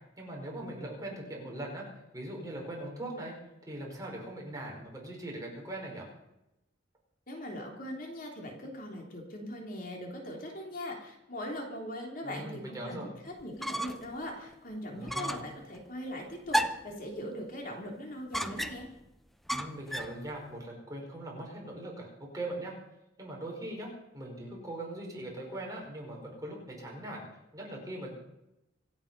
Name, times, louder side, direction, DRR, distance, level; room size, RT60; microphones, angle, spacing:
voice 1, 0.2-1.8 2.1-3.3 3.7-6.1 12.2-13.1 14.9-15.4 19.5-22.1 22.3-22.7 23.2-27.2 27.5-28.1, right 1 dB, 20° right, -1 dB, 4.9 m, -40 dB
voice 2, 7.3-18.8, left 1 dB, 50° left, 0 dB, 3.3 m, -40 dB
sound 1, 13.4-14.1 14.5-14.6 15.1-15.5 16.5-17.0 18.3-19.0 19.5-20.2, equal, ahead, 0.7 m, -33 dB
26.0 x 8.8 x 5.5 m, 0.90 s
head